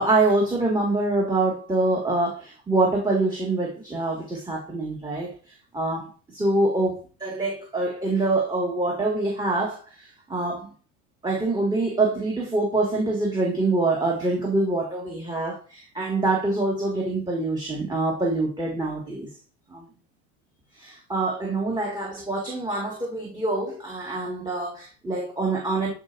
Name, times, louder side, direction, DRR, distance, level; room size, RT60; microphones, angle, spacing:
voice 1, 0.0-10.7 11.2-19.3 19.7-19.8 20.8-25.9, right 2 dB, 10° right, -2 dB, 1.9 m, -25 dB
8.6 x 4.5 x 2.6 m, 0.35 s
cardioid pair, 120°, 37 cm